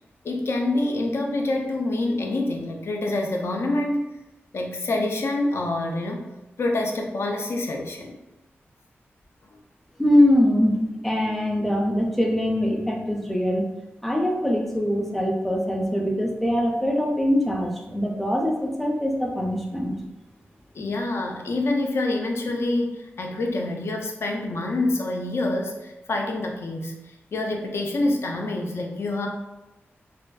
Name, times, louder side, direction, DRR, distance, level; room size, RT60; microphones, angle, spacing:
voice 1, 0.2-4.0 4.5-6.3 6.6-8.2 20.7-26.9 27.3-29.3, left 2 dB, 65° left, 2 dB, 0.4 m, -26 dB
voice 2, 10.0-13.7 14.0-20.0, left 1 dB, 5° left, 0 dB, 0.4 m, -23 dB
2.5 x 2.2 x 2.2 m, 0.99 s
wide cardioid pair, 80°, 5 cm